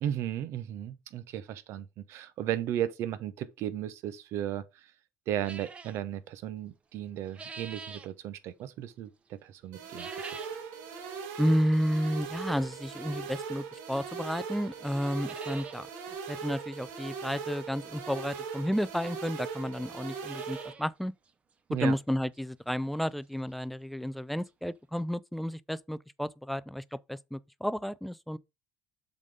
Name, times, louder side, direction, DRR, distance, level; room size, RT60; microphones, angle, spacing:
voice 1, 0.0-4.9 5.3-10.4 21.7-22.0, right 11 dB, 55° right, 1.0 m, -35 dB
sound 1, 5.4-6.0 7.0-8.1 9.8-10.6 11.0-11.1 12.0-12.1 13.7-13.8 14.3-14.4 14.6-14.7 15.0-15.8 16.2-16.3 16.5-16.6 18.1-18.2 19.0-19.1 19.3-19.4 19.9-20.9 21.3-21.4 21.9-22.0 22.4-22.5 24.2-24.3 24.5-24.6 25.0-25.1, right 4 dB, 25° right, 0.9 m, -46 dB
sound 2, 9.7-20.7, right 6 dB, 80° right, 2.0 m, -40 dB
voice 2, 11.4-15.9 16.3-21.1 21.8-26.8 27.1-28.4, equal, ahead, 0.4 m, -31 dB
7.3 x 4.1 x 4.9 m
cardioid pair, 135°, 5 cm